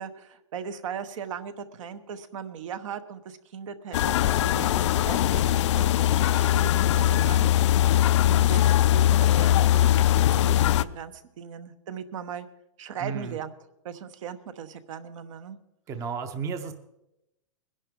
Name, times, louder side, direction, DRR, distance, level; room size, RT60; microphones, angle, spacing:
voice 1, 0.0-7.9 8.2-12.5 12.8-13.5 13.8-15.6, right 7 dB, 70° right, 10 dB, 1.1 m, -38 dB
sound 1, 3.9-10.8, left 12 dB, 60° left, 0.4 m, -21 dB
voice 2, 13.0-13.4 15.9-16.7, right 6 dB, 20° right, 9 dB, 0.7 m, -33 dB
21.0 x 11.0 x 3.7 m, 0.88 s
hypercardioid pair, 155°, 17 cm